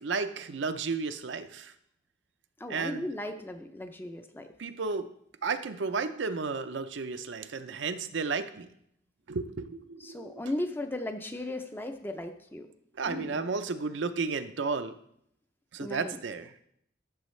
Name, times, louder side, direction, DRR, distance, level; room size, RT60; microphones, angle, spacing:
voice 1, 0.0-1.7 2.7-3.1 4.6-5.1 5.4-8.7 9.3-10.4 13.0-15.0 15.7-16.5, right 4 dB, 70° right, 9 dB, 0.6 m, -33 dB
voice 2, 2.6-4.5 10.0-12.7 13.0-13.4 15.8-16.2, left 1 dB, 10° left, 7 dB, 0.5 m, -36 dB
13.0 x 7.1 x 3.2 m, 0.72 s
head